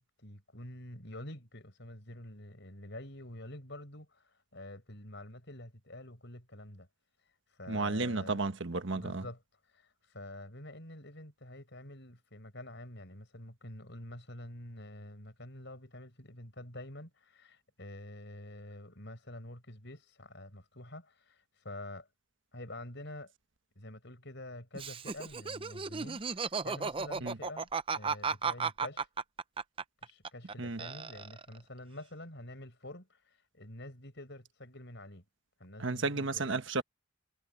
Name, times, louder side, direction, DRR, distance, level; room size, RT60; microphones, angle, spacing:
voice 1, 0.0-6.9 7.6-8.4 8.9-9.4 9.7-22.1 22.5-23.3 23.7-29.1 30.0-35.2 35.6-36.6, left 1 dB, 55° left, 6.8 m, -47 dB
voice 2, 7.7-9.2 27.2-27.4 30.6-30.8 35.8-36.8, right 3 dB, 60° right, 1.3 m, -33 dB
Laughter, 24.7-30.5 30.8-31.6, right 5 dB, 25° right, 0.5 m, -35 dB
head